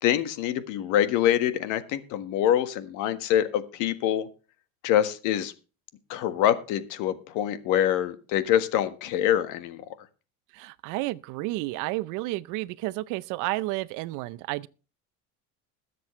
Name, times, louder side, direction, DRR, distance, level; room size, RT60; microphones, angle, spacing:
voice 1, 0.0-4.3 4.8-5.5 6.1-9.8, left 11 dB, 70° left, 1.6 m, -25 dB
voice 2, 10.5-14.7, right 19 dB, 70° right, 0.7 m, -31 dB
21.0 x 7.7 x 3.2 m
cardioid pair, 140°, 33 cm